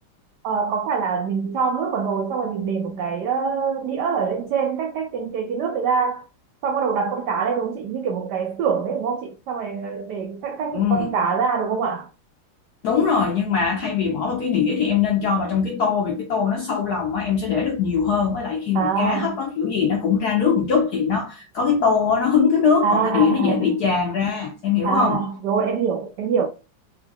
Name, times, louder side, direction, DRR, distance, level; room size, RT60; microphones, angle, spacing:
voice 1, 0.4-6.3 6.6-12.1 18.7-19.4 22.8-23.6 24.8-26.5, right 6 dB, 85° right, 0.9 m, -24 dB
voice 2, 10.7-11.1 12.8-25.2, left 6 dB, 70° left, 0.9 m, -21 dB
3.6 x 3.4 x 2.2 m
omnidirectional pair, 2.4 m